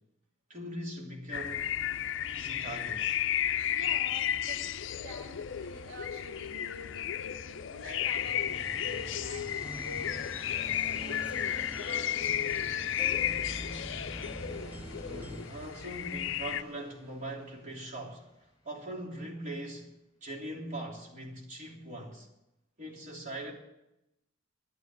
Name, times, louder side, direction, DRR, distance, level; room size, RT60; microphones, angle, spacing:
voice 1, 0.5-1.7 2.2-3.2 15.0-19.9 20.2-22.3 22.8-23.5, right 1 dB, 40° right, 3.2 m, -41 dB
sound 1, 1.3-16.6, left 10 dB, 65° left, 0.5 m, -33 dB
voice 2, 3.7-4.6 5.0-9.5 9.8-10.3 10.9-13.4, left 1 dB, 85° right, 2.1 m, -47 dB
sound 2, 7.7-18.4, left 1 dB, 20° left, 4.0 m, -49 dB
sound 3, 9.6-15.5, equal, 10° right, 0.4 m, -45 dB
12.0 x 9.3 x 9.6 m
head